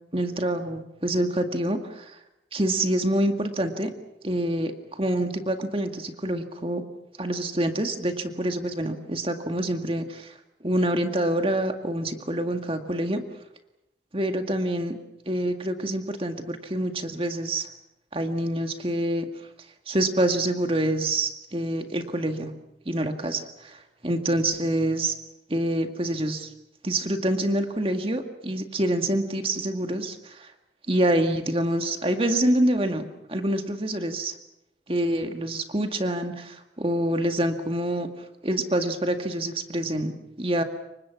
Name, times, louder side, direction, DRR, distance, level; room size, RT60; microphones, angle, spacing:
voice 1, 0.1-2.2 2.5-3.9 4.2-6.8 7.2-10.3 10.6-13.2 14.1-15.0 15.3-17.7 18.1-19.3 19.9-22.5 22.9-25.1 25.5-26.5 26.8-30.5 30.9-34.3 34.9-38.1 38.4-40.6, right 1 dB, 30° right, 6 dB, 2.0 m, -26 dB
29.5 x 24.5 x 6.0 m, 0.88 s
head